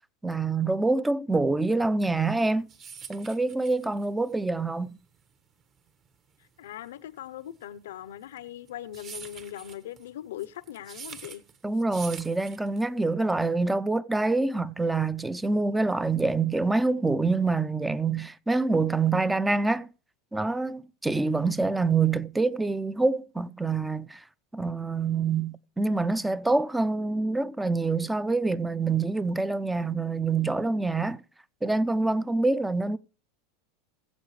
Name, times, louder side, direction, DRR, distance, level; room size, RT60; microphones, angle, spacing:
voice 1, 0.2-2.7 3.1-4.9 11.6-19.9 20.3-24.2 24.5-31.2 31.6-33.0, right 3 dB, 10° right, 0.5 m, -26 dB
sound 1, 2.3-13.1, right 6 dB, 35° right, 1.4 m, -46 dB
voice 2, 6.6-11.4, left 12 dB, 80° left, 0.7 m, -40 dB
20.5 x 7.6 x 3.2 m
supercardioid pair, 115°, 0 cm